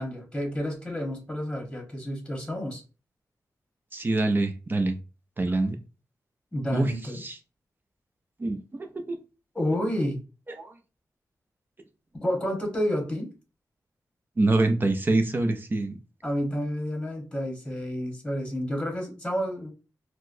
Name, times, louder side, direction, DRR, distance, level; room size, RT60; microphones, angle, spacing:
voice 1, 0.0-2.8 6.5-7.2 9.5-10.2 12.1-13.3 16.2-19.7, equal, 10° left, 1.2 m, -30 dB
voice 2, 3.9-5.0 5.4-5.8 6.7-6.9 7.2-7.4 8.4-9.2 10.6-10.7 14.4-16.0, right 2 dB, 30° right, 0.5 m, -25 dB
4.3 x 2.1 x 2.6 m
wide cardioid pair, 95°, 7 cm